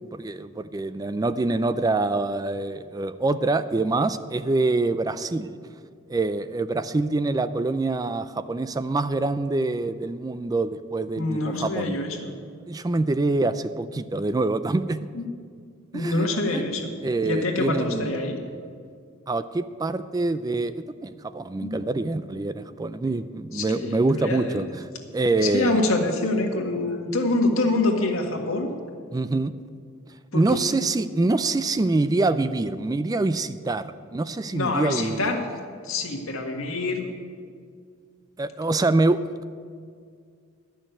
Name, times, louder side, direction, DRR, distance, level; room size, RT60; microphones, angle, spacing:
voice 1, 0.1-5.6 6.1-12.0 12.7-15.0 15.9-16.6 17.0-18.1 19.3-25.8 29.1-29.5 30.3-35.3 38.4-39.2, right 2 dB, 20° right, 13 dB, 0.3 m, -25 dB
voice 2, 11.2-12.3 15.1-15.2 15.9-16.9 17.2-18.4 21.6-21.7 23.5-24.7 25.4-28.7 30.3-30.8 34.5-35.5 35.8-37.1, left 2 dB, 85° left, 2 dB, 1.7 m, -26 dB
12.0 x 6.4 x 9.1 m, 2.1 s
head